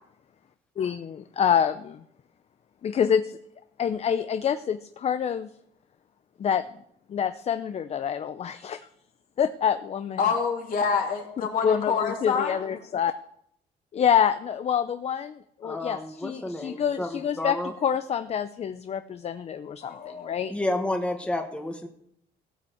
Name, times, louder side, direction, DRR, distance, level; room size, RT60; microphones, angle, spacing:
voice 1, 0.8-2.0 2.8-3.2 3.8-5.5 6.4-6.6 7.1-8.8 9.4-10.2 11.6-13.1 13.9-15.3 15.6-17.6 17.8-19.9 20.2-20.5, left 8 dB, 40° left, 11 dB, 0.6 m, -26 dB
voice 2, 10.2-12.6 19.8-20.5, left 6 dB, 55° left, 1 dB, 3.0 m, -27 dB
voice 3, 15.6-17.7 20.5-21.9, left 1 dB, 5° left, 4 dB, 1.5 m, -30 dB
16.5 x 6.0 x 7.9 m, 0.70 s
cardioid pair, 110°, 17 cm